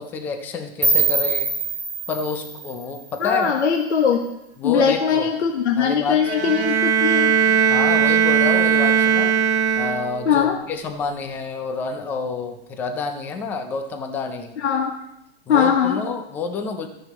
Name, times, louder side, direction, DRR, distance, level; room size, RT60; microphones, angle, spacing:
voice 1, 0.0-1.5 2.1-3.5 4.6-5.3 5.8-6.3 7.7-9.3 9.8-14.6 15.5-16.9, left 4 dB, 5° left, 6 dB, 0.3 m, -28 dB
sound 1, 0.8-3.7, right 4 dB, 10° right, 1.4 m, -24 dB
voice 2, 3.2-4.2 4.6-7.3 10.2-10.6 14.6-15.0 15.5-16.0, left 7 dB, 70° left, 2 dB, 1.4 m, -20 dB
Bowed string instrument, 6.2-10.4, right 7 dB, 65° right, 1.2 m, -19 dB
14.0 x 10.0 x 2.9 m, 0.84 s
hypercardioid pair, 130°, 35 cm